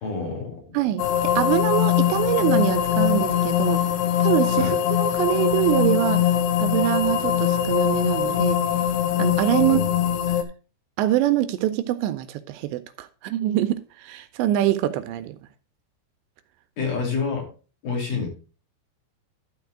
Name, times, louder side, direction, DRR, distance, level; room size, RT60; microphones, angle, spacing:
voice 1, 0.0-0.6 4.6-4.8 9.6-9.9 16.8-17.5 17.8-18.3, left 4 dB, 50° left, 0 dB, 3.7 m, -28 dB
voice 2, 0.7-3.8 4.2-6.3 6.6-8.6 9.2-9.8 11.0-15.4, right 13 dB, 85° right, 11 dB, 2.7 m, -24 dB
sound 1, 1.0-10.4, left 10 dB, 75° left, 2.6 m, -22 dB
12.5 x 4.6 x 4.6 m, 0.35 s
omnidirectional pair, 5.2 m